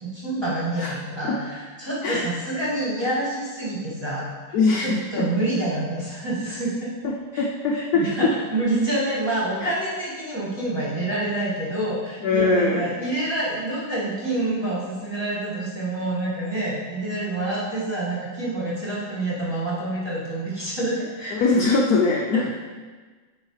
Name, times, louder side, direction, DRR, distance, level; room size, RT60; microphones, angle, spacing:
voice 1, 0.0-6.9 7.3-7.5 7.7-21.8 22.3-22.6, right 2 dB, 15° right, -9 dB, 1.8 m, -27 dB
voice 2, 4.5-5.2 7.0-8.1 9.6-9.7 12.2-12.9 21.3-22.6, left 3 dB, 70° left, -1 dB, 0.9 m, -22 dB
9.1 x 4.7 x 3.3 m, 1.4 s
omnidirectional pair, 2.1 m